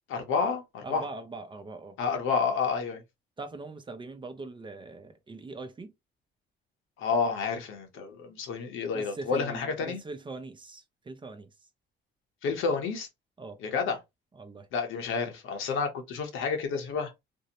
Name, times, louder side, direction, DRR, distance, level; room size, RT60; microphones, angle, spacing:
voice 1, 0.1-1.1 2.0-3.0 7.0-10.0 12.4-13.1 13.6-14.0 14.7-17.1, left 5 dB, 85° left, 0.8 m, -30 dB
voice 2, 0.8-2.0 3.4-5.9 8.9-11.5 13.4-13.6 14.3-14.7, right 3 dB, 25° right, 0.5 m, -41 dB
2.6 x 2.1 x 2.8 m
cardioid pair, 90°, 20 cm